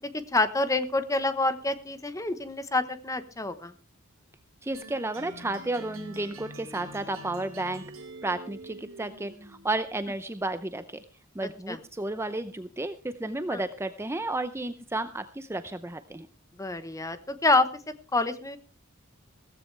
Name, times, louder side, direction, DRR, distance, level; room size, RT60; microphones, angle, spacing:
voice 1, 0.0-3.7 11.7-11.8 13.5-13.6 16.6-17.7 18.1-18.6, left 2 dB, 15° left, 11 dB, 1.0 m, -27 dB
voice 2, 4.6-7.8 8.2-11.0 11.3-16.3, right 2 dB, 10° right, 10 dB, 0.6 m, -32 dB
sound 1, 4.7-9.9, right 2 dB, 70° right, 2.9 m, -45 dB
16.0 x 14.5 x 3.3 m, 0.35 s
head